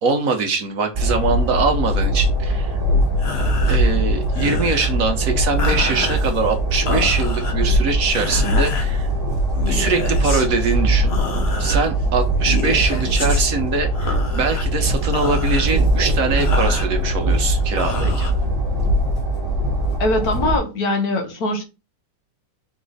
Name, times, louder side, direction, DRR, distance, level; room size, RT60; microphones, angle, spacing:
voice 1, 0.0-2.8 3.7-9.1 9.7-11.1 11.6-18.3, right 4 dB, 60° right, 1.1 m, -22 dB
Train, 0.9-20.6, right 1 dB, 15° right, 1.3 m, -21 dB
sound 1, 3.1-19.0, left 4 dB, 45° left, 1.0 m, -31 dB
voice 2, 20.0-21.6, left 2 dB, 65° left, 1.4 m, -21 dB
3.9 x 3.1 x 4.0 m
omnidirectional pair, 1.8 m